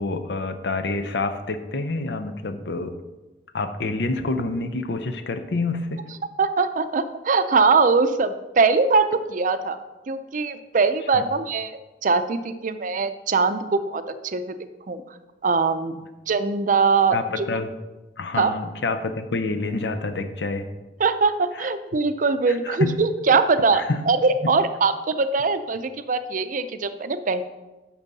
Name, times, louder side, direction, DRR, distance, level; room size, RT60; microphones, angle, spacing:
voice 1, 0.0-3.0 3.5-6.0 11.1-11.2 17.1-17.7 18.2-20.7 21.6-21.7 22.5-23.0 23.7-24.0 24.4-24.5, left 3 dB, 70° left, 8 dB, 0.7 m, -27 dB
voice 2, 6.4-9.8 10.1-14.4 14.9-15.0 15.4-15.9 16.3-17.5 18.4-18.5 21.0-27.4, right 4 dB, 45° right, 11 dB, 0.5 m, -22 dB
9.0 x 6.2 x 4.1 m, 1.1 s
head